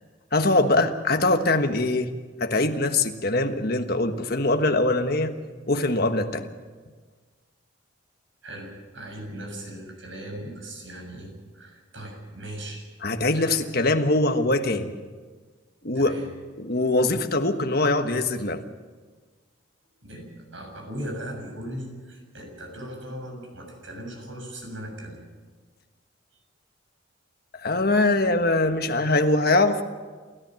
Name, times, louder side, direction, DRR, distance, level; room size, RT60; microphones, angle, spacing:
voice 1, 0.3-2.1 2.4-5.3 5.7-6.5 13.0-14.9 15.8-16.1 16.6-18.6 27.5-29.8, left 2 dB, 50° left, 6 dB, 1.4 m, -22 dB
voice 2, 8.4-12.9 13.3-13.5 15.9-16.3 20.0-25.2, right 1 dB, 70° right, 2 dB, 6.9 m, -38 dB
29.0 x 14.0 x 7.7 m, 1.4 s
head